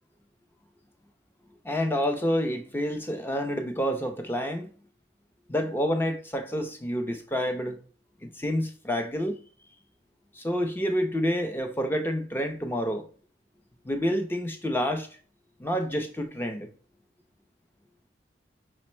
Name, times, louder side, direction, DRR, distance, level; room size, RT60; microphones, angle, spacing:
voice 1, 1.6-4.7 5.5-7.8 8.2-9.4 10.4-13.1 13.8-15.1 15.6-16.7, equal, 10° left, 0.5 m, -28 dB
5.3 x 2.1 x 4.3 m
head